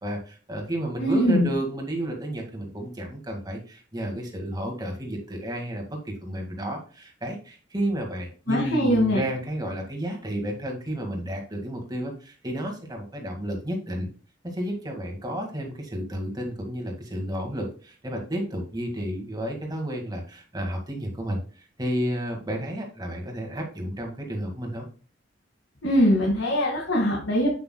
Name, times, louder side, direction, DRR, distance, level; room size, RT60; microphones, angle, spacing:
voice 1, 0.0-14.1 14.4-24.9, right 1 dB, 20° right, 2 dB, 1.9 m, -32 dB
voice 2, 1.0-1.5 8.5-9.2 25.8-27.5, equal, 80° left, -2 dB, 2.1 m, -22 dB
8.5 x 7.9 x 2.2 m, 0.38 s
head